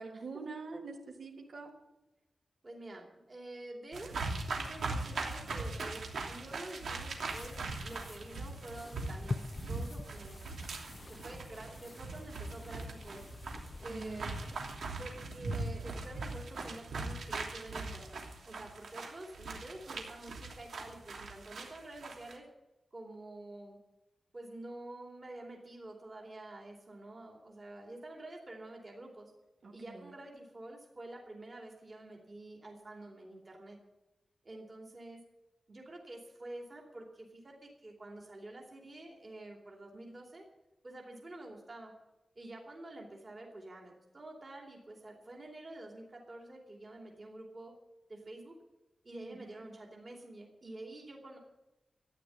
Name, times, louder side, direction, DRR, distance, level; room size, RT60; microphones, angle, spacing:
voice 1, 0.0-1.7 13.9-14.3 29.6-30.1 49.2-49.6, right 4 dB, 65° right, 0 dB, 3.1 m, -45 dB
voice 2, 2.6-4.1 4.5-10.4 11.1-13.2 13.8-14.3 15.0-22.4 22.9-23.8 24.3-29.3 29.7-33.8 34.4-35.2 35.7-40.4 40.8-41.9 42.3-47.7 48.1-48.5 49.0-51.4, right 1 dB, 30° right, 0 dB, 2.9 m, -48 dB
sound 1, 3.9-22.3, right 3 dB, 90° right, 2.9 m, -40 dB
sound 2, 7.3-14.8, left 3 dB, 30° left, 0.5 m, -46 dB
14.0 x 10.0 x 9.4 m, 0.99 s
wide cardioid pair, 175°, 0 cm